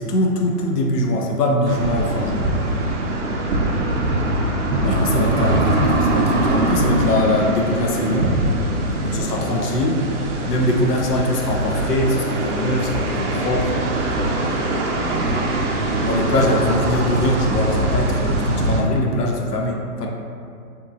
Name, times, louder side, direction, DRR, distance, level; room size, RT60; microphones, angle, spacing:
voice 1, 0.0-2.5 4.8-8.4 9.0-10.0 10.5-13.8 16.0-20.1, left 1 dB, 85° left, 0 dB, 0.6 m, -22 dB
sound 1, 1.6-18.8, right 1 dB, 55° right, 0.5 m, -22 dB
sound 2, 2.0-2.3 4.0-4.4 5.8-6.1 7.9-8.1 10.0-10.3 12.5-12.7, left 2 dB, 40° left, 1.0 m, -43 dB
2.9 x 2.5 x 2.3 m, 2.4 s
hypercardioid pair, 130°, 46 cm